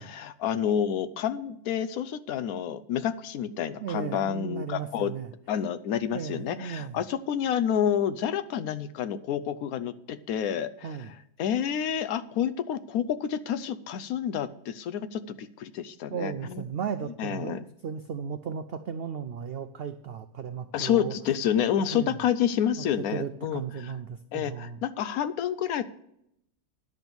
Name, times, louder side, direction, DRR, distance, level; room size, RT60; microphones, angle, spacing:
voice 1, 0.0-5.1 5.5-10.9 11.4-16.6 17.2-17.6 20.7-23.6 24.3-25.8, left 9 dB, 75° left, 12 dB, 1.0 m, -29 dB
voice 2, 3.8-5.3 6.1-7.0 10.8-11.1 16.1-21.2 21.9-22.2 22.8-24.8, right 7 dB, 85° right, 9 dB, 0.5 m, -35 dB
10.5 x 6.0 x 6.9 m, 0.77 s
omnidirectional pair, 1.6 m